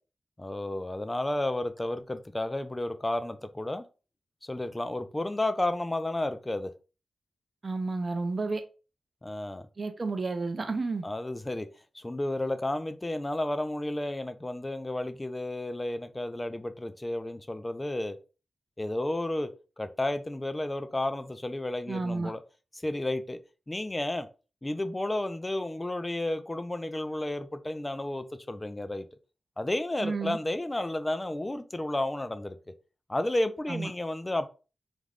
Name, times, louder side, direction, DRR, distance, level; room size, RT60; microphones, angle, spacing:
voice 1, 0.4-3.8 4.4-6.7 9.2-9.6 11.0-11.7 11.9-18.2 18.8-19.5 19.8-22.4 22.7-23.4 23.7-24.3 24.6-29.1 29.6-32.6 33.1-34.5, left 1 dB, 20° left, 0.3 m, -32 dB
voice 2, 7.6-8.6 9.8-11.1 21.9-22.3 30.0-30.4 33.7-33.9, right 3 dB, 45° right, 0.5 m, -31 dB
2.5 x 2.2 x 3.2 m
wide cardioid pair, 105°, 0 cm